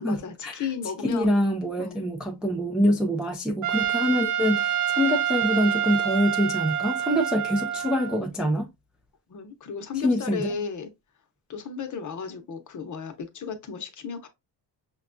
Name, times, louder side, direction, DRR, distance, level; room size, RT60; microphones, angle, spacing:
voice 1, 0.0-1.3 1.8-2.1 9.3-10.9 11.5-14.3, left 6 dB, 45° left, 0.8 m, -34 dB
voice 2, 1.0-8.7 10.0-10.5, equal, ahead, 0.3 m, -25 dB
Trumpet, 3.6-8.2, right 9 dB, 45° right, 0.6 m, -27 dB
5.8 x 2.3 x 2.5 m
cardioid pair, 115°, 44 cm